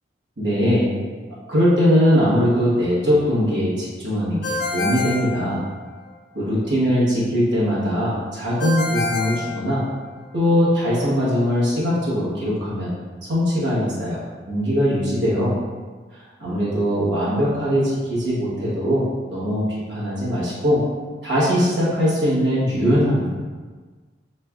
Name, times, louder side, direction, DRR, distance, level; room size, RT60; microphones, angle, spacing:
voice 1, 0.4-0.9 1.5-5.6 6.3-9.8 10.3-12.9 13.3-14.2 14.5-15.6 16.1-20.8 21.2-23.3, equal, 70° right, -8 dB, 1.0 m, -21 dB
Ringtone, 4.4-6.1 8.6-10.3, left 3 dB, 60° left, 0.5 m, -27 dB
3.3 x 3.1 x 2.3 m, 1.4 s
head